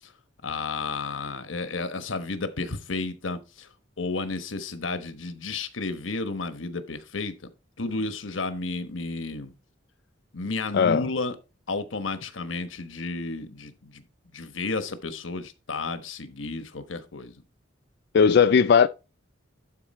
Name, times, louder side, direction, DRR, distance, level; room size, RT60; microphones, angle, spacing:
voice 1, 0.4-3.7 4.0-7.3 7.8-9.5 10.3-11.4 11.7-14.0 14.3-17.4, left 3 dB, 90° left, 1.2 m, -32 dB
voice 2, 18.1-18.9, left 6 dB, 55° left, 0.3 m, -17 dB
11.5 x 4.3 x 4.3 m
head